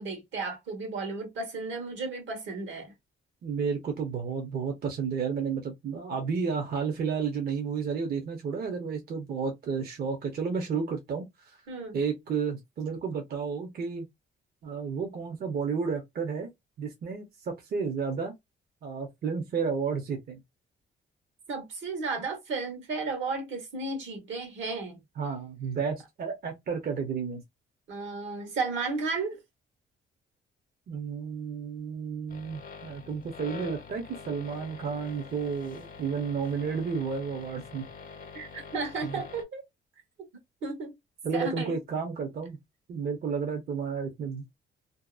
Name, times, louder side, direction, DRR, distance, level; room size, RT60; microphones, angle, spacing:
voice 1, 0.0-2.9 11.7-12.0 21.5-25.0 27.9-29.4 38.3-39.6 40.6-40.9 41.3-41.8, right 3 dB, 75° right, 1.2 m, -34 dB
voice 2, 3.4-11.6 11.9-14.1 14.6-16.5 16.8-18.3 18.8-20.4 25.2-27.4 30.9-37.9 39.0-39.2 41.2-42.6 42.9-44.5, right 5 dB, 50° right, 0.7 m, -32 dB
sound 1, 32.3-39.4, left 5 dB, 45° left, 0.7 m, -45 dB
2.7 x 2.0 x 2.3 m
cardioid pair, 90°, 20 cm